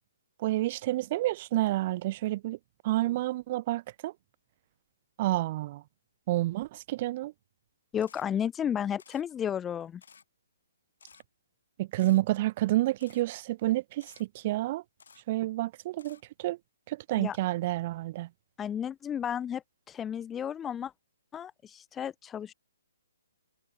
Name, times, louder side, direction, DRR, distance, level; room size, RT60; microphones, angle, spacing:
voice 1, 0.4-2.6 2.8-4.1 5.2-5.8 6.3-7.3 11.8-14.8 15.3-16.6 16.9-18.3, right 16 dB, 35° right, 2.4 m, -29 dB
voice 2, 7.9-10.0 17.2-17.4 18.6-20.9 21.3-22.5, left 9 dB, 15° left, 1.0 m, -33 dB
Camera, 8.0-8.2 9.0-9.2 10.0-10.2 11.0-11.2 12.0-12.2 13.0-13.2 14.0-14.2 15.0-15.2 16.0-16.2, left 6 dB, 70° left, 7.2 m, -56 dB
hypercardioid pair, 150°, 0 cm